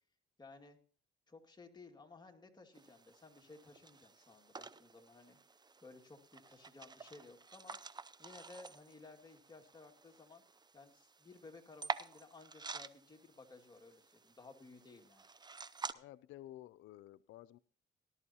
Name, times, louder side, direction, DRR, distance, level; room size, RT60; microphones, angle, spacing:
voice 1, 0.4-0.8 1.3-5.4 5.8-7.8 8.2-10.4 10.7-15.3, left 3 dB, 20° left, 2 dB, 2.2 m, -57 dB
sound 1, 2.7-15.9, right 4 dB, 20° right, 0.6 m, -49 dB
voice 2, 15.9-17.6, left 14 dB, 85° left, 16 dB, 0.4 m, -53 dB
18.5 x 12.0 x 2.8 m, 0.42 s
cardioid pair, 90°, 20 cm